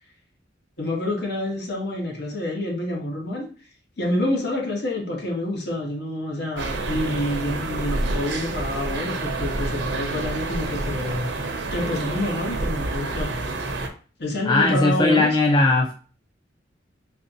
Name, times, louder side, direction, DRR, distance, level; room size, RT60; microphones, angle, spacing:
voice 1, 0.8-3.5 4.0-11.4 11.7-13.4 14.2-15.4, left 1 dB, 60° left, 0.9 m, -27 dB
sound 1, 6.6-13.9, right 2 dB, 65° right, 0.5 m, -28 dB
voice 2, 14.5-15.9, left 2 dB, 25° left, 0.3 m, -18 dB
3.4 x 2.6 x 2.6 m
head